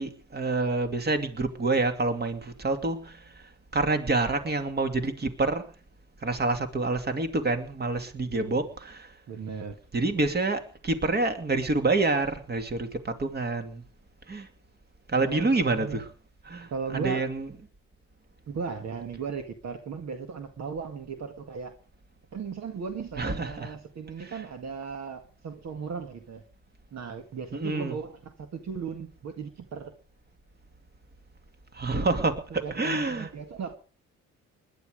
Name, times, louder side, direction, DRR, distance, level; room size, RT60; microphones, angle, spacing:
voice 1, 0.0-3.2 3.7-5.7 6.2-9.1 9.9-13.8 14.3-14.5 15.1-16.0 16.5-17.5 23.2-23.7 24.2-24.3 27.5-27.9 31.7-33.3, right 3 dB, 35° right, 2.6 m, -27 dB
voice 2, 8.2-8.6 9.3-9.8 15.2-16.0 16.7-17.3 18.5-21.7 22.3-26.4 26.9-29.9 32.5-33.8, right 5 dB, 60° right, 1.9 m, -36 dB
20.5 x 11.0 x 5.1 m
cardioid pair, 90°, 30 cm